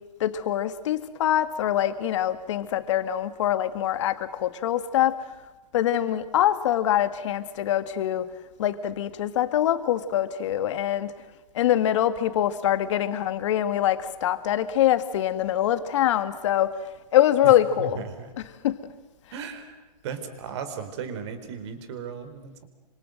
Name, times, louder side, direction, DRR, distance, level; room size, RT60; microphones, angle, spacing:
voice 1, 0.2-5.2 5.7-8.3 8.6-11.1 11.5-16.8 17.1-18.0 18.6-18.8, left 11 dB, 45° left, 11 dB, 2.0 m, -24 dB
voice 2, 17.4-18.3 19.3-19.8 20.0-22.6, right 6 dB, 45° right, 10 dB, 4.3 m, -36 dB
27.5 x 26.0 x 7.9 m, 1.1 s
hypercardioid pair, 160°, 21 cm